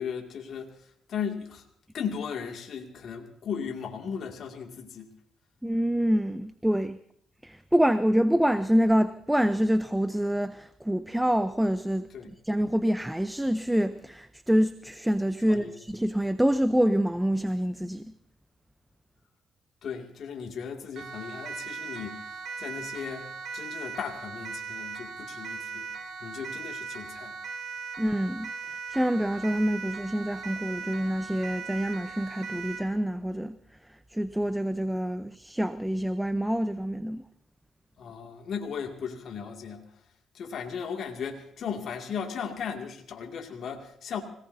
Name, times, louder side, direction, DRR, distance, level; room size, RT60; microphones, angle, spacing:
voice 1, 0.0-1.6 1.9-5.1 12.1-12.3 15.5-15.8 19.8-25.9 26.2-27.4 38.0-39.8 40.3-44.2, left 7 dB, 65° left, 2.3 m, -36 dB
voice 2, 5.6-7.0 7.4-12.1 12.4-18.1 28.0-28.5 28.9-33.6 34.1-37.2, equal, 5° right, 0.7 m, -26 dB
Siren, 21.0-32.9, right 5 dB, 65° right, 2.1 m, -39 dB
25.0 x 18.5 x 2.7 m
cardioid pair, 90°, 0 cm